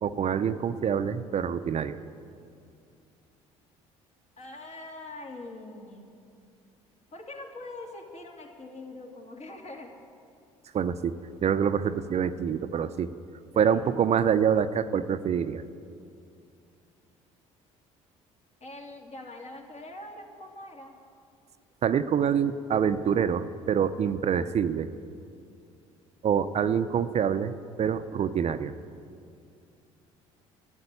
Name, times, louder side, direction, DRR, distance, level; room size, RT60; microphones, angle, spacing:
voice 1, 0.0-2.0 10.7-11.2 11.4-13.1 13.6-15.6 21.8-24.9 26.2-27.5 27.8-28.7, right 8 dB, 45° right, 11 dB, 0.6 m, -26 dB
voice 2, 4.4-6.0 7.1-9.9 13.5-13.9 18.6-21.0, left 2 dB, 45° left, 1 dB, 2.6 m, -43 dB
12.0 x 8.0 x 9.8 m, 2.4 s
hypercardioid pair, 60°, 16 cm